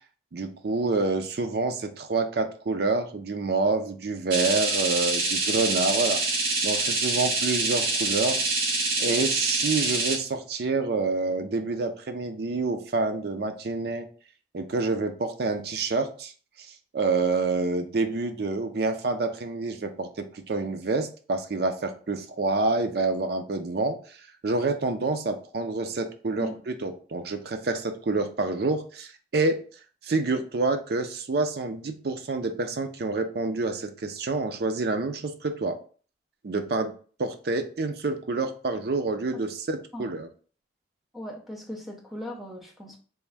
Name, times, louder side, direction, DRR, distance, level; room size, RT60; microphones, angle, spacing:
voice 1, 0.3-6.2 6.6-8.4 9.0-14.1 14.5-16.3 16.6-24.2 24.4-29.6 30.0-35.8 36.4-36.9 37.2-40.3, right 3 dB, 55° right, 7 dB, 0.5 m, -27 dB
sound 1, 4.3-10.2, right 3 dB, 80° right, 1.5 m, -26 dB
voice 2, 41.1-43.0, left 1 dB, ahead, 1 dB, 0.5 m, -38 dB
3.4 x 2.5 x 3.3 m, 0.42 s
head